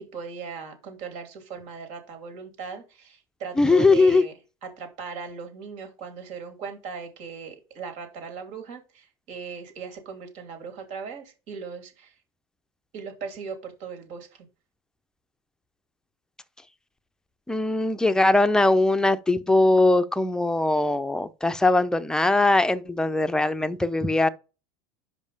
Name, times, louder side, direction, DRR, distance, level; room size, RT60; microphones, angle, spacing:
voice 1, 0.0-4.3 4.6-12.2 12.9-14.5, right 5 dB, 60° right, 2.8 m, -38 dB
voice 2, 3.6-4.2 17.5-24.3, left 2 dB, 5° left, 0.5 m, -21 dB
5.4 x 5.1 x 5.2 m
supercardioid pair, 120°, 14 cm